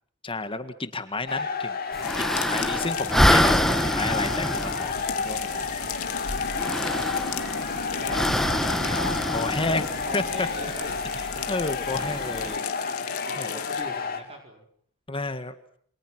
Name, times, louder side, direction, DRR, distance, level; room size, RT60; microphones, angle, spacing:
voice 1, 0.2-1.8 2.2-5.6 8.2-8.3 9.3-10.5 11.5-12.6 13.4-13.6 15.1-15.5, left 3 dB, 25° left, 10 dB, 1.8 m, -31 dB
sound 1, 1.3-14.2, left 5 dB, 45° left, 3.1 m, -31 dB
sound 2, 1.9-12.6, equal, ahead, 1.6 m, -27 dB
sound 3, 2.0-13.8, left 7 dB, 75° left, 2.3 m, -37 dB
voice 2, 5.4-5.9 6.6-7.3 7.8-8.2 8.6-9.1 10.1-11.0 11.9-14.6, right 1 dB, 30° right, 2 dB, 4.6 m, -43 dB
28.5 x 26.5 x 6.2 m, 0.62 s
head